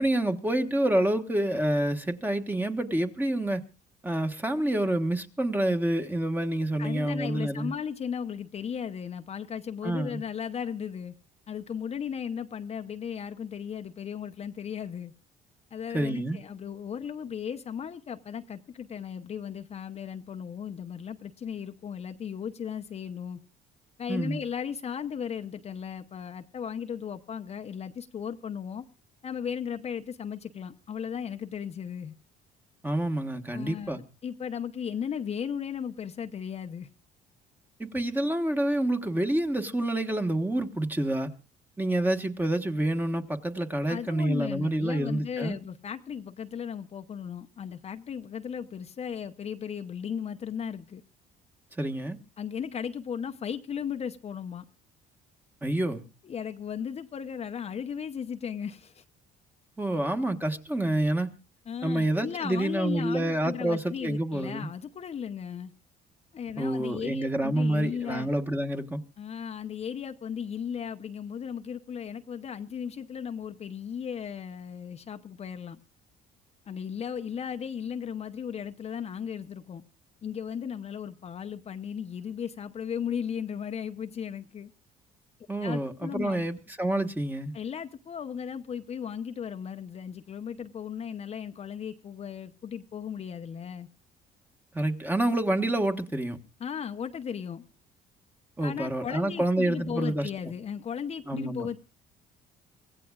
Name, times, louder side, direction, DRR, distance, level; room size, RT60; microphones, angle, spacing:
voice 1, 0.0-3.6 4.0-7.7 9.8-10.2 15.9-16.4 24.1-24.4 32.8-34.0 37.8-41.3 41.8-45.6 51.8-52.2 55.6-56.0 59.8-61.3 61.8-64.7 66.6-69.0 85.5-87.5 94.7-96.4 98.6-100.3 101.3-101.7, right 1 dB, 10° right, 1.3 m, -28 dB
voice 2, 6.8-11.1 11.5-15.1 15.7-23.4 24.0-28.8 29.2-32.1 33.5-36.9 43.9-51.0 52.4-54.6 56.2-59.0 61.7-65.7 66.3-68.3 69.2-75.8 76.7-79.8 80.2-84.7 85.6-86.4 87.5-93.9 96.6-97.6 98.6-101.8, left 7 dB, 40° left, 0.7 m, -36 dB
24.5 x 16.5 x 2.4 m
cardioid pair, 110°, 17 cm